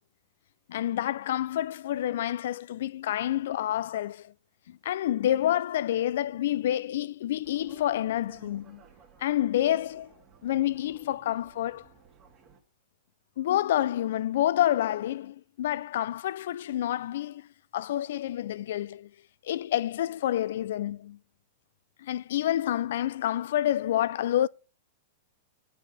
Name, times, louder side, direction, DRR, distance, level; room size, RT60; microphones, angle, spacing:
voice 1, 0.7-4.3 4.7-8.8 9.2-10.1 10.4-11.9 13.4-17.5 17.7-19.1 19.4-21.2 22.0-24.5, left 12 dB, 70° left, 0.4 m, -28 dB
sound 1, 7.4-12.6, right 6 dB, 30° right, 1.8 m, -56 dB
8.8 x 4.9 x 6.8 m
supercardioid pair, 145°, 0 cm